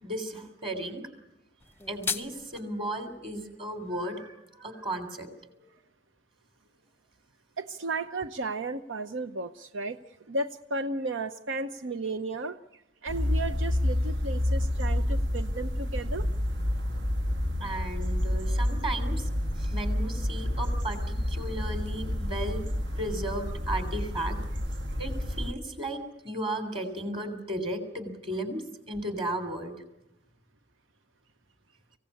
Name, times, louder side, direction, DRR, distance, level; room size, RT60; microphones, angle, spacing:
voice 1, 0.0-1.0 1.9-5.3 17.6-19.3 19.6-22.6 23.0-24.4 25.0-25.1 25.4-28.6 28.9-29.7, right 1 dB, 30° right, 7 dB, 3.2 m, -35 dB
sound 1, 1.6-2.6, left 5 dB, 10° left, 0.7 m, -34 dB
voice 2, 7.6-16.3, right 2 dB, 85° right, 10 dB, 0.8 m, -34 dB
sound 2, 13.1-25.5, left 1 dB, 65° right, 1.6 m, -29 dB
24.5 x 16.5 x 8.4 m, 0.89 s
head